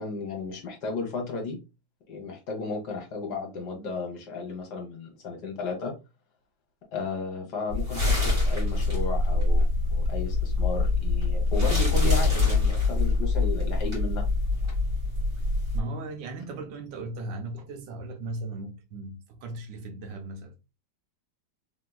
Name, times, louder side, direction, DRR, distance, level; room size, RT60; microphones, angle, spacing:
voice 1, 0.0-1.6 2.1-5.9 6.9-14.2, left 4 dB, 65° left, 1.5 m, -34 dB
sound 1, 7.7-15.8, left 3 dB, 30° right, 2.0 m, -24 dB
voice 2, 15.7-20.5, right 2 dB, 80° right, 1.3 m, -37 dB
3.4 x 2.9 x 2.2 m
omnidirectional pair, 2.0 m